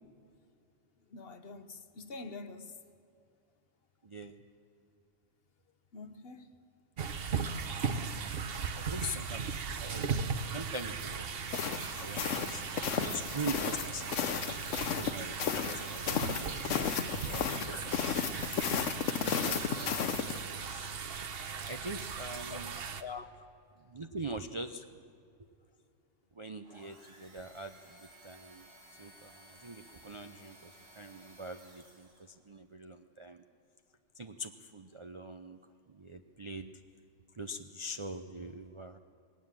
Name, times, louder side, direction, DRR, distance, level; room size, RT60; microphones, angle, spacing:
voice 1, 1.1-2.8 5.9-6.6 22.5-22.6 23.0-23.3 28.7-28.8, left 4 dB, 50° left, 1.1 m, -45 dB
voice 2, 4.0-4.4 8.3-10.2 10.5-11.5 12.0-14.5 14.9-18.5 19.2-20.0 20.4-20.9 21.7-22.7 23.8-24.8 26.4-28.7 29.0-33.4 34.2-35.6 35.9-36.7 37.3-39.0, right 1 dB, 35° right, 0.5 m, -43 dB
sound 1, 7.0-23.0, right 6 dB, 55° right, 1.0 m, -38 dB
sound 2, 11.5-20.4, left 8 dB, 75° left, 1.1 m, -34 dB
sound 3, 26.6-32.4, right 1 dB, 85° right, 3.3 m, -57 dB
20.0 x 17.5 x 7.6 m
omnidirectional pair, 1.3 m